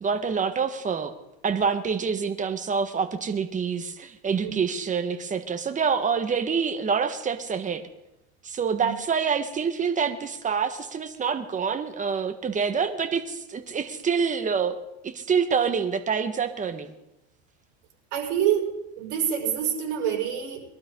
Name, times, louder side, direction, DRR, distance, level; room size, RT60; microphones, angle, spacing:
voice 1, 0.0-1.1 1.4-7.8 8.4-14.8 15.0-16.9, right 6 dB, 25° right, 7 dB, 1.6 m, -26 dB
voice 2, 18.1-20.6, right 9 dB, 70° right, 0 dB, 5.9 m, -27 dB
22.0 x 12.5 x 3.9 m, 0.89 s
supercardioid pair, 120°, 33 cm